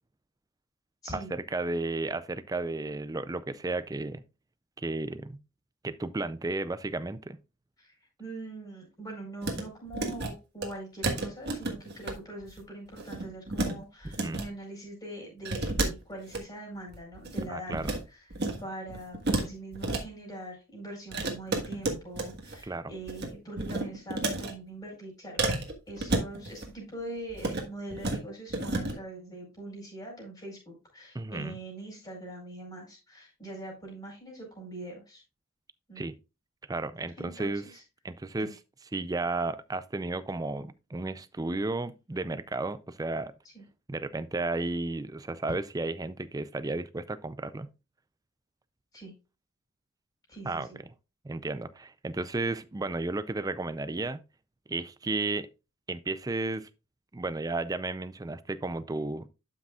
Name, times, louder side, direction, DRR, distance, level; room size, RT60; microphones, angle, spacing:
voice 1, 1.1-4.2 4.8-5.4 5.8-7.4 14.2-14.4 17.5-17.9 22.6-22.9 31.1-31.6 36.0-36.1 36.7-37.6 38.0-38.5 38.9-43.3 43.9-47.7 50.4-50.7 51.2-54.2 54.7-55.5 55.9-56.7 57.1-59.3, right 2 dB, 15° right, 0.4 m, -33 dB
voice 2, 7.8-17.7 18.1-18.2 18.6-25.4 25.9-35.2 35.9-36.1 37.2-37.8 38.4-38.5 43.5-43.6 48.9-49.1 50.3-50.8, right 1 dB, 20° left, 4.7 m, -43 dB
sound 1, 9.4-9.6 9.9-10.3 10.6-10.7 11.0-12.1 12.4-12.6 12.9-13.7 14.0-14.5 15.4-16.4 16.9-18.0 18.3-18.6 18.9-20.0 21.1-22.6 22.9-23.3 23.6-24.5 25.4-26.7 27.3-27.6 27.9-28.2 28.5-28.9, right 2 dB, 50° right, 1.5 m, -31 dB
11.5 x 6.0 x 2.4 m
head